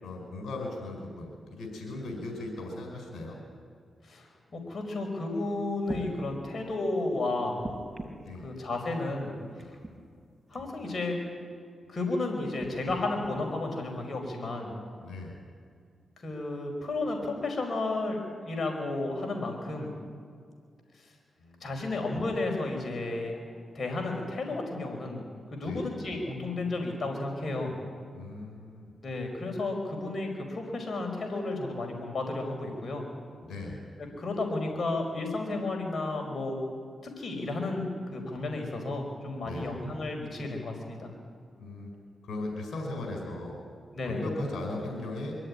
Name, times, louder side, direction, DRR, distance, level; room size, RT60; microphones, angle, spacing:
voice 1, 0.0-3.4 8.2-8.5 15.0-15.3 21.4-21.6 25.6-25.9 28.1-28.9 33.4-33.8 39.4-39.7 41.6-41.9 42.2-43.6 44.0-45.4, left 2 dB, 80° left, 2 dB, 4.9 m, -38 dB
voice 2, 4.0-7.6 8.4-9.3 10.5-11.2 11.9-14.7 16.2-19.9 21.6-23.4 23.7-27.7 29.0-33.0 34.2-36.6 37.0-37.9 38.1-41.1 44.0-44.2, left 2 dB, 50° left, 2 dB, 5.0 m, -32 dB
sound 1, 5.3-5.4 5.8-6.1 7.6-8.3 9.6-9.9 10.5-10.7 12.6-13.0 13.9-14.0, right 2 dB, 15° right, 5.3 m, -40 dB
23.5 x 14.5 x 9.8 m, 2.2 s
cardioid pair, 55°, 0 cm